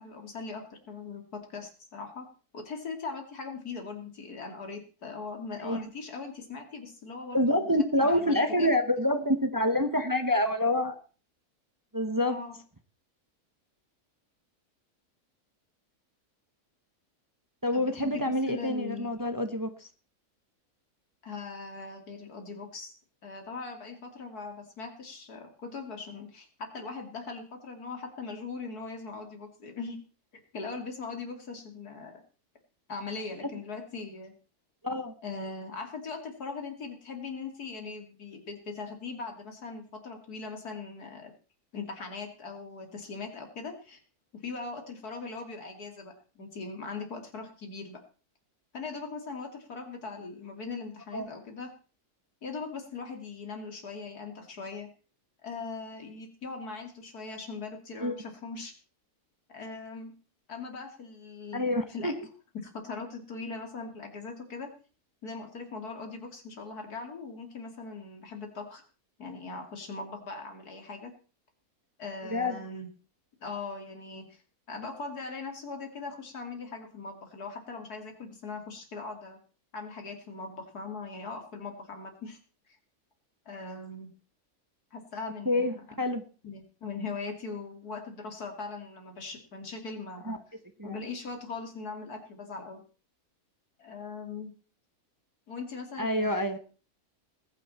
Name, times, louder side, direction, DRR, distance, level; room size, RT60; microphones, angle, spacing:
voice 1, 0.0-2.3 2.5-7.7 8.0-8.3 8.6-8.7 12.2-12.6 17.7-19.1 21.2-22.9 23.2-30.0 30.5-32.2 32.9-34.3 35.2-41.3 41.7-44.0 44.4-48.0 48.7-51.7 52.4-54.9 55.4-58.7 59.5-60.1 60.5-62.1 62.5-64.7 65.2-68.8 69.2-71.1 72.0-72.9 73.4-74.4 74.7-79.4 79.7-82.4 83.5-84.1 84.9-85.9 86.4-90.3 90.8-92.8 93.8-94.5 95.5-96.5, left 4 dB, 90° left, 4 dB, 3.2 m, -40 dB
voice 2, 7.3-11.0 11.9-12.4 17.6-19.9 34.8-35.1 51.1-51.3 58.0-58.2 61.5-62.1 72.3-72.6 85.5-86.2 90.3-90.4 90.8-91.0 96.0-96.6, left 1 dB, 15° right, 8 dB, 0.9 m, -27 dB
20.5 x 9.4 x 4.3 m, 0.37 s
omnidirectional pair, 1.6 m